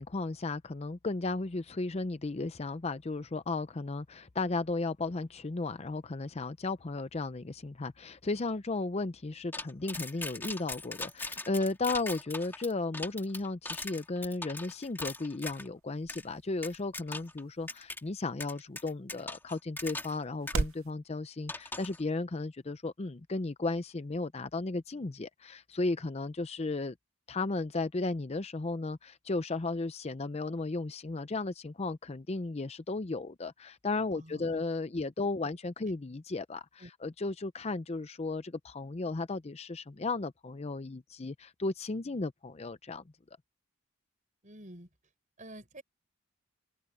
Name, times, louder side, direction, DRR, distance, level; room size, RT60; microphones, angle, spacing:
voice 1, 0.0-26.9 27.3-43.0, left 3 dB, 30° left, 0.5 m, -35 dB
sound 1, 9.5-15.7 16.1-16.2 16.6-17.4 17.7-18.0 18.4-20.2 20.5-20.6 21.5-22.0, left 2 dB, 10° left, 1.8 m, -40 dB
sound 2, 14.6-20.9, right 3 dB, 75° right, 0.7 m, -42 dB
voice 2, 34.1-34.6 35.5-35.6 36.8-36.9 44.4-44.9 45.4-45.8, right 1 dB, 35° right, 5.6 m, -49 dB
open air
head